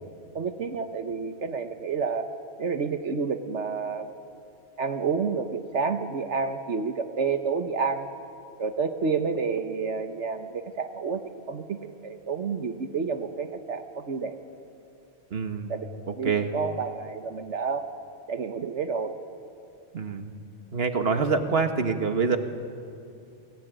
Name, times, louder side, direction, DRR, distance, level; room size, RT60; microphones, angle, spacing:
voice 1, 0.3-2.3 2.6-4.1 4.8-8.1 8.6-14.4 15.7-17.9 18.3-19.1, right 5 dB, 75° right, 7 dB, 1.5 m, -29 dB
voice 2, 15.3-15.7 16.1-16.5 19.9-20.3 20.7-22.4, right 5 dB, 60° right, 7 dB, 1.8 m, -26 dB
29.0 x 19.5 x 9.2 m, 2.5 s
omnidirectional pair, 1.2 m